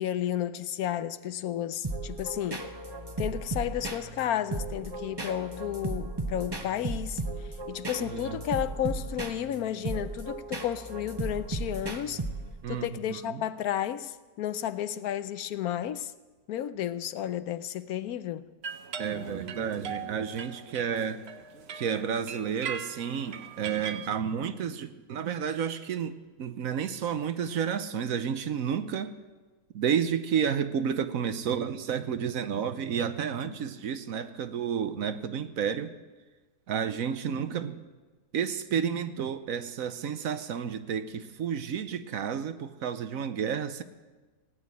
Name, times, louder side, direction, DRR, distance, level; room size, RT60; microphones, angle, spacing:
voice 1, 0.0-2.7 3.2-7.2 7.7-12.2 12.7-16.1 16.5-18.4 33.4-33.6, left 11 dB, 80° left, 1.1 m, -32 dB
sound 1, 1.8-12.7, right 2 dB, 20° right, 0.9 m, -36 dB
voice 2, 8.0-8.4 12.6-13.4 19.0-21.2 21.7-29.1 29.7-35.9 36.7-37.8 38.3-43.8, right 7 dB, 70° right, 1.2 m, -31 dB
sound 2, 18.6-24.1, right 6 dB, 50° right, 0.9 m, -40 dB
17.5 x 9.6 x 8.3 m
omnidirectional pair, 1.6 m